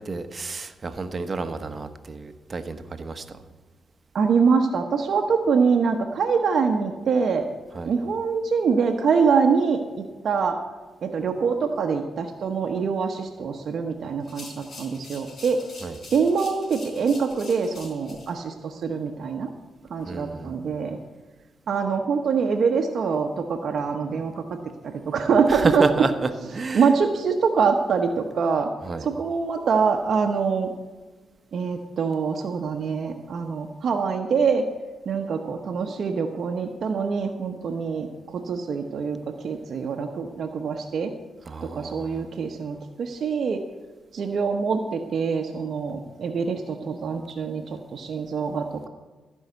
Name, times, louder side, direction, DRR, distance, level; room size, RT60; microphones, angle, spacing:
voice 1, 0.0-3.2 7.7-7.9 15.8-16.0 20.1-20.5 25.5-26.9 28.8-29.1 41.4-42.3, right 4 dB, 45° right, 9 dB, 1.1 m, -29 dB
voice 2, 4.1-7.5 7.9-10.6 11.0-15.6 16.1-19.5 19.9-21.0 21.7-24.6 24.8-25.9 26.7-28.7 29.0-30.7 31.5-34.6 35.1-39.2 39.4-41.1 41.6-43.6 44.1-48.9, right 5 dB, 65° right, 3 dB, 0.9 m, -24 dB
sound 1, 14.2-18.3, left 2 dB, 55° left, 4.2 m, -44 dB
15.0 x 5.6 x 8.0 m, 1.3 s
cardioid pair, 60°, 0 cm